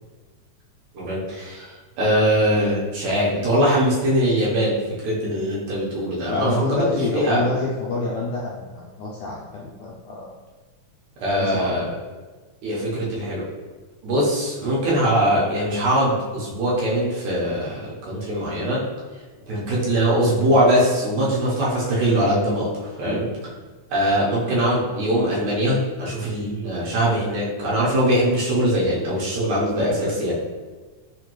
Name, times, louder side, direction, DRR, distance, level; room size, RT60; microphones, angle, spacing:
voice 1, 0.9-1.7 2.0-6.8 7.1-7.5 11.2-11.9 12.6-13.4 14.0-18.8 19.5-22.7 23.0-23.3 23.9-30.3, equal, 75° right, -6 dB, 2.1 m, -21 dB
voice 2, 6.3-10.3 11.3-11.9 23.1-23.2, left 3 dB, 80° left, -4 dB, 1.5 m, -27 dB
5.0 x 2.2 x 2.9 m, 1.3 s
omnidirectional pair, 3.4 m